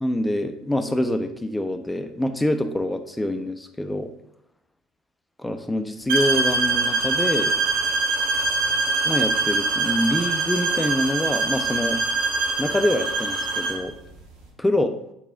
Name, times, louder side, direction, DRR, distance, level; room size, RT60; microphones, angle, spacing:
voice 1, 0.0-4.1 5.4-7.5 9.0-12.0 12.6-13.9 14.6-14.9, left 1 dB, 10° left, 8 dB, 0.8 m, -25 dB
sound 1, 6.1-13.8, right 3 dB, 75° right, 2.6 m, -23 dB
9.8 x 4.1 x 3.6 m, 0.80 s
hypercardioid pair, 60°, 0 cm